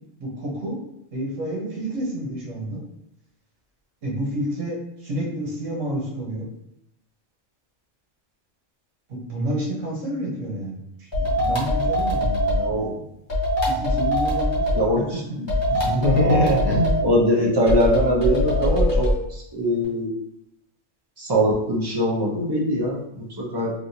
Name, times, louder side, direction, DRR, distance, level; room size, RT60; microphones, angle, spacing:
voice 1, 0.2-0.8 1.1-2.8 4.0-6.5 9.1-12.9 13.7-14.9 15.3-15.4, right 1 dB, 80° right, -3 dB, 1.3 m, -30 dB
sound 1, 11.1-12.7 13.3-14.8 15.5-17.0 17.7-19.2, left 1 dB, 25° left, 0.9 m, -22 dB
voice 2, 12.5-12.9 14.7-20.1 21.2-23.7, equal, 30° right, -3 dB, 0.4 m, -22 dB
3.4 x 2.6 x 2.7 m, 0.80 s
omnidirectional pair, 1.3 m